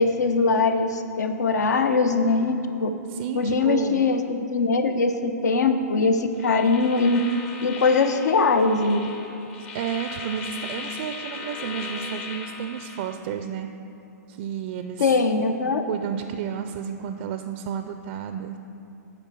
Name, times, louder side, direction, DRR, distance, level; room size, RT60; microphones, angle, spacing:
voice 1, 0.0-2.9 3.3-7.2 7.6-9.1 15.0-15.8, left 4 dB, 75° left, 8 dB, 0.7 m, -21 dB
voice 2, 3.1-4.0 9.7-13.7 14.3-15.1 15.9-18.6, right 8 dB, 45° right, 8 dB, 0.4 m, -31 dB
sound 1, 6.4-13.1, left 5 dB, 45° left, 1.0 m, -38 dB
9.1 x 5.0 x 6.2 m, 2.7 s
hypercardioid pair, 130°, 9 cm